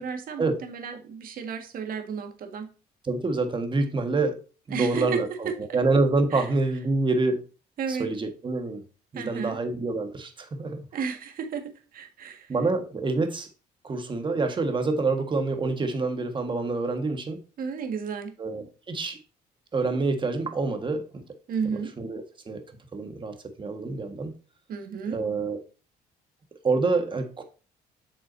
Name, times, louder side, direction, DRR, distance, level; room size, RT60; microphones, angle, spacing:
voice 1, 0.0-2.7 4.7-5.8 6.3-6.5 7.8-8.1 9.2-9.6 10.9-12.5 17.6-18.3 21.5-21.9 24.7-25.2, right 6 dB, 60° right, 1.8 m, -33 dB
voice 2, 3.0-4.4 4.7-7.4 7.9-8.8 9.1-10.8 12.5-13.5 13.8-17.4 18.4-19.2 19.7-21.2 22.0-22.6 22.9-24.4 25.1-25.6 26.6-27.4, right 3 dB, 30° right, 1.6 m, -27 dB
8.4 x 6.1 x 2.7 m
cardioid pair, 110°, 17 cm